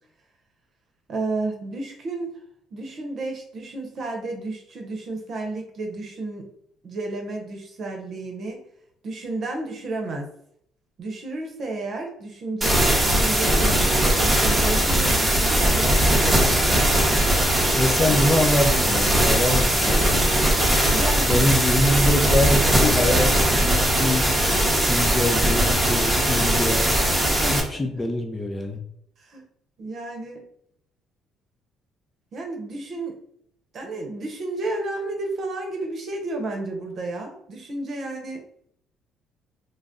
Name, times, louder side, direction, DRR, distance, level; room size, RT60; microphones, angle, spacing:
voice 1, 1.1-2.3 2.7-6.5 6.8-8.6 9.0-10.3 11.0-16.7 20.9-21.6 27.4-27.8 29.2-29.4 29.8-30.4 32.3-33.2 33.7-38.4, right 2 dB, 55° right, 2 dB, 0.8 m, -32 dB
sound 1, 12.6-27.6, right 1 dB, 15° right, 0.8 m, -20 dB
voice 2, 17.7-20.2 21.2-24.2 24.7-26.8 27.5-28.8, left 1 dB, 25° left, 3 dB, 0.5 m, -24 dB
2.5 x 2.0 x 3.5 m, 0.68 s
supercardioid pair, 85°, 0 cm